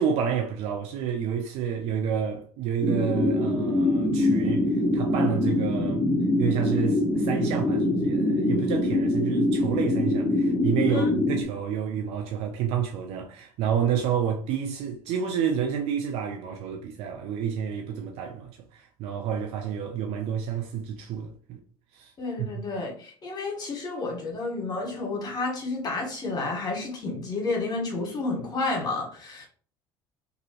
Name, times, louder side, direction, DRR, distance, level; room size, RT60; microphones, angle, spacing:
voice 1, 0.0-6.0 6.4-21.6 21.9-22.1 22.4-22.6, right 8 dB, 65° right, 0.4 m, -29 dB
sound 1, 2.8-11.4, left 1 dB, 5° left, 0.9 m, -24 dB
voice 2, 22.2-29.5, left 3 dB, 40° left, 1.4 m, -31 dB
2.7 x 2.6 x 2.9 m
supercardioid pair, 80°, 11 cm